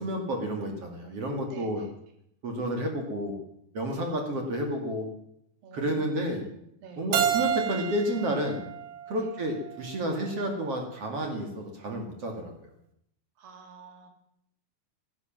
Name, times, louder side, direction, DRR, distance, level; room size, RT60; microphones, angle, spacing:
voice 1, 0.0-1.9 2.4-3.3 3.7-5.1 5.7-6.4 7.0-8.6 9.1-12.5, right 1 dB, 45° right, 3 dB, 2.6 m, -30 dB
voice 2, 1.5-1.9 3.9-4.1 5.6-6.2 6.8-7.1 9.2-9.3 13.4-14.1, right 5 dB, 65° right, 4 dB, 4.2 m, -49 dB
Keyboard (musical), 7.1-10.0, right 9 dB, 80° right, 3.6 m, -30 dB
15.5 x 11.0 x 7.4 m, 0.75 s
omnidirectional pair, 4.7 m